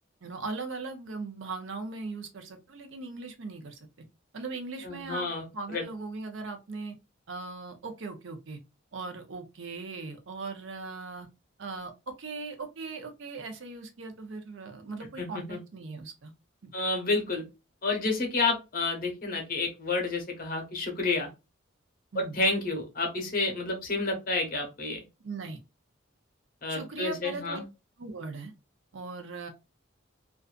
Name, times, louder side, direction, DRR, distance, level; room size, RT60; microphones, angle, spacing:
voice 1, 0.2-3.8 4.3-6.9 7.3-8.6 8.9-11.3 11.6-11.9 12.2-16.3 16.6-16.7 22.1-22.4 25.2-25.6 26.7-27.6 28.0-28.5 28.9-29.5, right 3 dB, 70° right, 0.6 m, -39 dB
voice 2, 4.8-5.4 5.7-5.8 15.2-15.6 16.7-17.4 17.8-21.3 22.1-25.0 26.6-27.6, left 3 dB, 45° left, 0.8 m, -30 dB
2.5 x 2.3 x 2.3 m
head